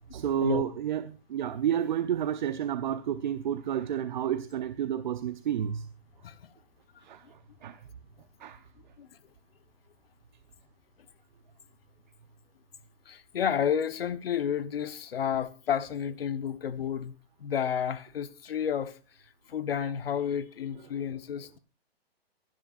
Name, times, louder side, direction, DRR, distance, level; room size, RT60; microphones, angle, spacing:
voice 1, 0.1-5.8 7.0-7.2 7.6-7.8 8.4-8.6, right 9 dB, 50° right, 0.8 m, -30 dB
voice 2, 13.0-17.1 17.4-19.0 19.5-21.6, left 8 dB, 65° left, 1.3 m, -31 dB
24.5 x 10.5 x 2.6 m
hypercardioid pair, 165°, 31 cm